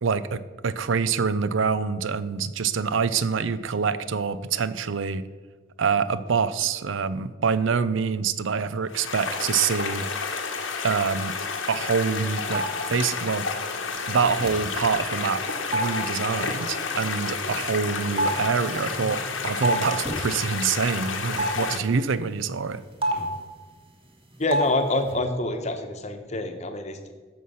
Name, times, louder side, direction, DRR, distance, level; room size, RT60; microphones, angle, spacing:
voice 1, 0.0-5.3 5.8-10.1 10.8-11.4 11.7-13.5 14.1-15.4 15.7-22.8, right 5 dB, 80° right, 15 dB, 0.5 m, -26 dB
sound 1, 8.9-21.8, left 5 dB, 90° left, 1.2 m, -30 dB
sound 2, 12.5-12.7 13.9-14.0 14.2-14.7 15.7-15.9 17.6-17.7 18.2-19.8 20.1-20.2 21.4-21.5 23.0-23.4 24.5-24.7 24.9-25.1, right 1 dB, 30° right, 1.5 m, -26 dB
voice 2, 24.4-27.1, left 2 dB, 35° left, 7 dB, 1.0 m, -26 dB
14.0 x 5.7 x 5.6 m, 1.4 s
head